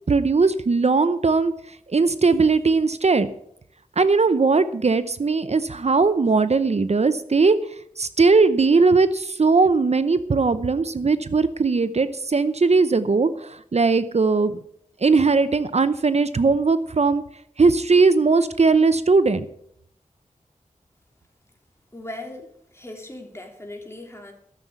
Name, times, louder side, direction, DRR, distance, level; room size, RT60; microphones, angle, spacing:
voice 1, 0.1-1.5 1.9-3.3 4.0-7.6 8.0-14.6 15.0-17.2 17.6-19.5, right 4 dB, 55° right, 13 dB, 0.7 m, -19 dB
voice 2, 21.9-24.3, left 2 dB, 20° left, 1 dB, 3.2 m, -38 dB
13.0 x 7.3 x 8.0 m, 0.69 s
wide cardioid pair, 60°, 14 cm